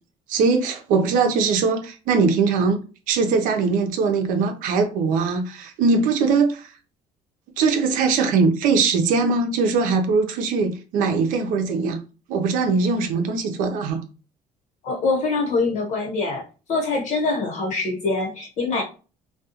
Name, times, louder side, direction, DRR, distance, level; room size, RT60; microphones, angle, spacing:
voice 1, 0.3-2.8 3.1-6.7 7.6-12.0 12.3-14.0, right 4 dB, 70° right, 0.6 m, -21 dB
voice 2, 14.8-16.4 16.7-18.8, left 3 dB, 55° left, 1.1 m, -24 dB
2.3 x 2.3 x 2.8 m
cardioid pair, 105°, 14 cm